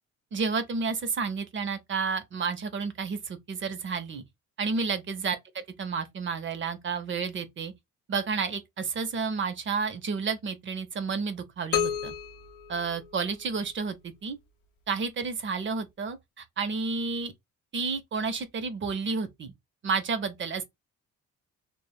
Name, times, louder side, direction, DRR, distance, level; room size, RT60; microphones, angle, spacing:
voice 1, 0.3-4.2 4.6-7.7 8.1-12.1 12.7-14.4 14.9-17.3 17.7-19.5 19.8-20.6, right 5 dB, 40° right, 0.5 m, -31 dB
sound 1, 11.7-13.6, left 9 dB, 85° left, 0.5 m, -32 dB
2.0 x 2.0 x 3.3 m
cardioid pair, 90°, 30 cm